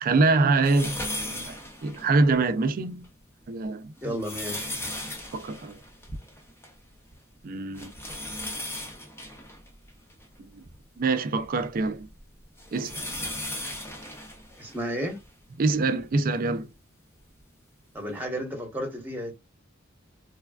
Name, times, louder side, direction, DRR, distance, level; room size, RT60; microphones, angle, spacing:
voice 1, 0.0-1.0 1.2-1.5 1.8-3.1 3.5-4.2 5.3-5.8 7.4-7.9 10.4-10.6 11.0-12.1 12.7-13.0 15.6-16.7, right 3 dB, 45° right, 0.4 m, -25 dB
sound 1, 0.6-2.5 3.0-3.1 3.8-6.8 7.1-7.2 7.7-10.8 11.4-15.3 16.0-16.1 17.4-17.5, left 1 dB, 10° left, 0.7 m, -37 dB
voice 2, 4.0-4.7 14.6-15.2 17.9-19.3, equal, 10° right, 1.0 m, -32 dB
3.2 x 2.2 x 2.3 m
head